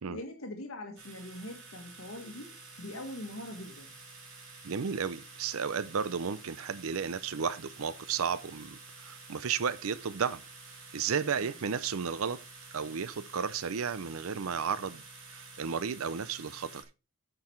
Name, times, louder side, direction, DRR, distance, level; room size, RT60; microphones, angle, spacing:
voice 1, 0.1-3.9 11.4-11.6, left 1 dB, 70° left, 1.9 m, -43 dB
sound 1, 1.0-16.8, right 3 dB, 60° right, 3.9 m, -50 dB
voice 2, 4.6-10.4 10.9-12.4 12.7-15.0 15.3-16.8, right 6 dB, 75° right, 0.5 m, -33 dB
9.5 x 6.9 x 4.5 m
head